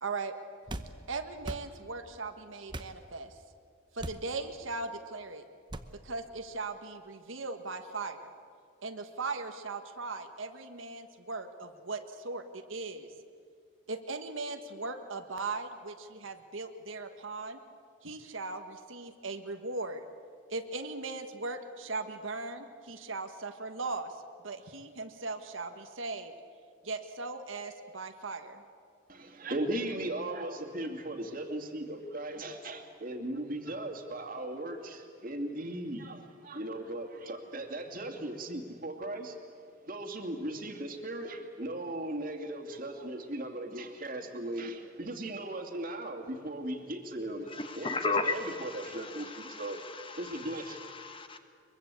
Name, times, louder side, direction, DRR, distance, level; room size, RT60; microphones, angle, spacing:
voice 1, 0.0-0.4 1.1-3.3 3.9-5.5 5.9-8.3 8.8-13.1 13.9-17.6 18.0-20.0 20.5-24.1 24.4-26.3 26.8-28.6, right 3 dB, 80° right, 1.5 m, -38 dB
sound 1, 0.7-0.9 1.4-1.7 2.7-2.9 4.0-4.2 5.7-5.9, right 1 dB, 25° right, 0.9 m, -39 dB
voice 2, 29.1-39.4 39.8-47.9 48.2-49.8 50.1-50.8, right 1 dB, 45° right, 2.5 m, -37 dB
voice 3, 47.5-51.4, left 3 dB, 25° left, 1.3 m, -36 dB
23.0 x 23.0 x 8.4 m
head